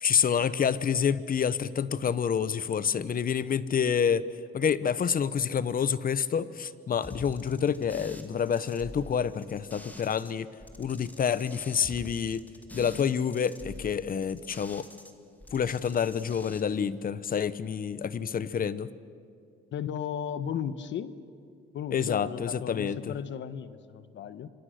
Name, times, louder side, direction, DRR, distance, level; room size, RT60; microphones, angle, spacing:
voice 1, 0.0-4.3 4.5-10.5 10.8-12.4 12.7-14.9 15.5-18.9 21.9-23.1, left 7 dB, 45° left, 16 dB, 1.0 m, -28 dB
sound 1, 7.0-10.3 10.6-15.1 15.4-16.6, left 1 dB, 10° left, 2.5 m, -46 dB
voice 2, 19.7-21.1 21.7-24.5, left 8 dB, 70° left, 13 dB, 1.1 m, -35 dB
27.5 x 25.0 x 6.6 m, 2.3 s
cardioid pair, 90°, 20 cm